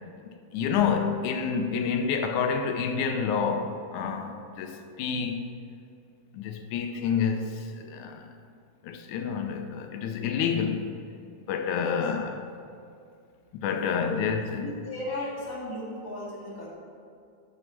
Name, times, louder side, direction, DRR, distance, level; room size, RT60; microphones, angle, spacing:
voice 1, 0.5-5.4 6.3-8.3 8.8-10.9 11.5-12.4 13.6-14.7, left 6 dB, 85° left, 2.1 m, -28 dB
voice 2, 14.6-16.7, left 1 dB, 10° left, 1.6 m, -36 dB
7.7 x 6.2 x 7.1 m
omnidirectional pair, 3.4 m